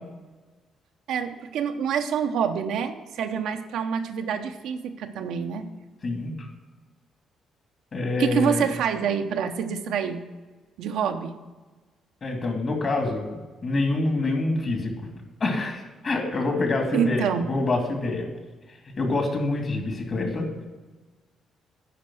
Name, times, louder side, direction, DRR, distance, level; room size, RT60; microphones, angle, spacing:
voice 1, 1.1-5.7 8.2-10.3 10.8-11.3 16.9-17.5, right 7 dB, 80° right, 6 dB, 0.9 m, -26 dB
voice 2, 6.0-6.5 7.9-8.7 12.2-15.1 15.4-18.3 19.0-20.5, left 2 dB, 45° left, 3 dB, 2.7 m, -26 dB
10.0 x 5.2 x 7.7 m, 1.3 s
cardioid pair, 90°, 0 cm